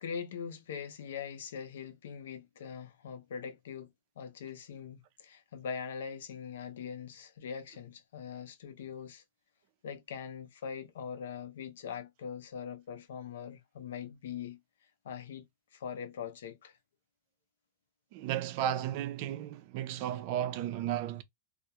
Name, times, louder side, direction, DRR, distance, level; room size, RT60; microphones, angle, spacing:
voice 1, 0.0-3.9 4.2-9.2 9.8-14.6 15.0-15.5 15.7-16.8, left 7 dB, 85° left, 0.6 m, -42 dB
voice 2, 18.1-21.2, right 11 dB, 50° right, 0.4 m, -34 dB
2.3 x 2.0 x 2.8 m
supercardioid pair, 140°, 0 cm